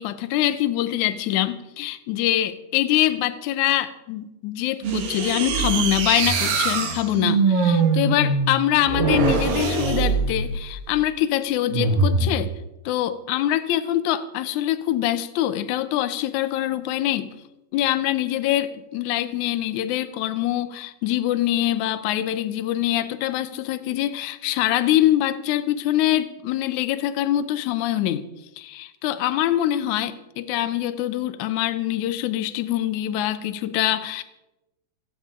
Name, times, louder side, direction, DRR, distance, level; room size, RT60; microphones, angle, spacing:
voice 1, 0.0-12.5 12.9-17.3 17.7-28.2 28.6-34.2, left 13 dB, 70° left, 12 dB, 1.9 m, -24 dB
sound 1, 4.8-10.8 11.7-12.3, right 4 dB, 75° right, 3.3 m, -22 dB
28.5 x 9.7 x 3.8 m, 0.98 s
omnidirectional pair, 4.0 m